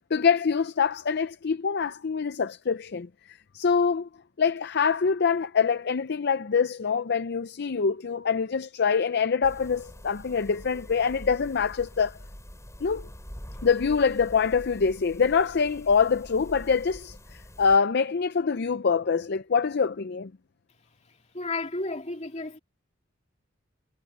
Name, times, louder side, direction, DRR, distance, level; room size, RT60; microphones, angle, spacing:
voice 1, 0.1-4.1 4.4-12.2 12.8-13.1 13.6-20.3, left 5 dB, 50° left, 0.5 m, -25 dB
sound 1, 9.4-17.8, equal, 15° left, 5.9 m, -45 dB
voice 2, 21.3-22.6, left 2 dB, 35° left, 2.7 m, -32 dB
head